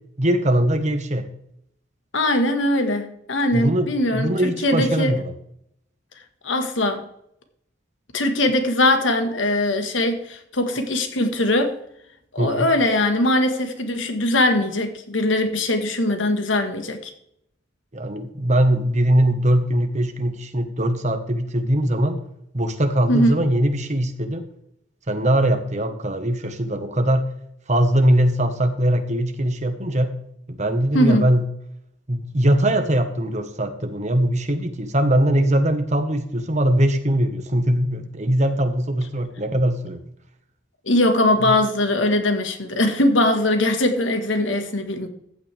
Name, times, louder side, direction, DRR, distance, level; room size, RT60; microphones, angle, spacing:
voice 1, 0.2-1.3 3.5-5.3 12.4-12.7 17.9-22.2 22.5-24.4 25.1-27.2 27.7-30.1 30.5-31.5 32.1-40.1 41.4-41.5, right 1 dB, 35° right, 1.4 m, -21 dB
voice 2, 2.1-5.1 6.4-7.1 8.1-11.8 12.3-17.1 23.1-23.4 30.9-31.3 40.8-45.1, left 1 dB, 70° left, 1.6 m, -21 dB
15.0 x 8.8 x 3.5 m
head